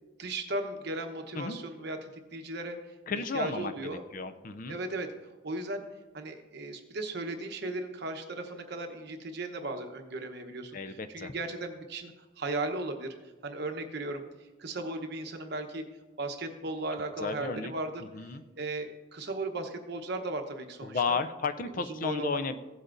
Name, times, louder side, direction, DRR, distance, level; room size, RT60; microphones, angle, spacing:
voice 1, 0.2-3.0 3.3-4.0 4.7-5.1 5.4-5.8 6.1-13.1 13.4-15.8 16.2-21.2 21.9-22.6, right 2 dB, 55° right, 5 dB, 1.0 m, -36 dB
voice 2, 3.1-4.8 10.7-11.3 17.2-17.7 18.1-18.4 20.8-22.6, left 4 dB, 45° left, 11 dB, 0.4 m, -33 dB
16.0 x 8.1 x 2.6 m, 1.2 s
head